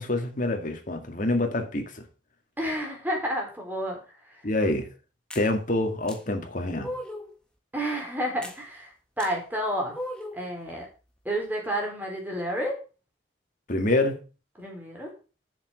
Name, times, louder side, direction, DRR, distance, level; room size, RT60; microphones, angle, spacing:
voice 1, 0.0-2.0 4.4-4.9 5.4-6.9 13.7-14.2, left 2 dB, 50° left, 2.0 m, -26 dB
voice 2, 2.6-4.0 7.7-10.0 10.3-10.9 11.2-12.8 14.6-15.1, equal, 10° right, 3.9 m, -30 dB
sound 1, 5.3-5.5 6.1-6.2 6.8-7.3 8.4-8.6 9.2-9.3 9.9-10.5, left 1 dB, 5° left, 1.5 m, -37 dB
7.3 x 7.2 x 6.3 m
head